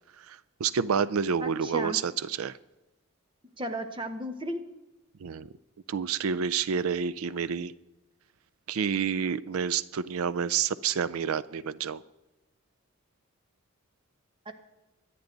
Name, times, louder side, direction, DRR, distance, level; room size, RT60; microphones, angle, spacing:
voice 1, 0.2-2.6 5.2-5.5 5.9-7.7 8.7-12.0, right 7 dB, 85° right, 18 dB, 0.4 m, -29 dB
voice 2, 1.4-2.0 3.6-4.6 14.4-14.5, equal, 25° right, 8 dB, 1.2 m, -34 dB
24.5 x 9.4 x 3.9 m, 1.1 s
head